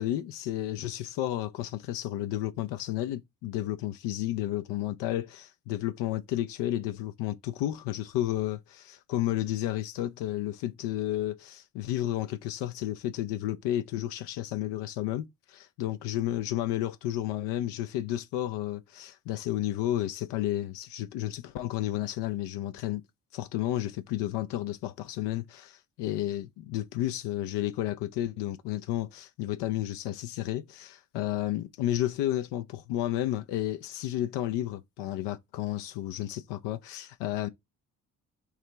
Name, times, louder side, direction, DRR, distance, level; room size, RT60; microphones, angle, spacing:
voice 1, 0.0-23.0 23.3-37.5, left 13 dB, 80° left, 0.5 m, -32 dB
4.8 x 2.8 x 3.3 m
supercardioid pair, 55°, 41 cm